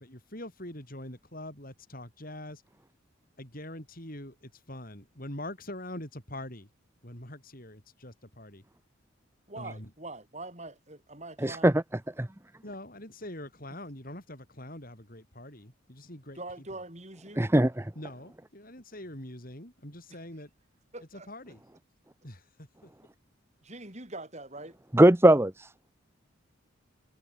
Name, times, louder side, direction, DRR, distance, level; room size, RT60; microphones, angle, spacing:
voice 1, 0.0-2.6 3.4-6.7 7.0-8.6 9.5-9.9 12.6-16.4 16.7-16.8 17.9-20.5 21.1-21.6 22.2-22.9, left 1 dB, 40° left, 6.5 m, -43 dB
voice 2, 9.5-11.8 16.3-17.5 20.1-20.2 20.9-21.3 23.6-24.7, right 2 dB, 35° right, 6.7 m, -43 dB
voice 3, 11.4-11.7 12.2-12.3 17.4-17.9 24.9-25.7, right 1 dB, 10° right, 0.7 m, -20 dB
head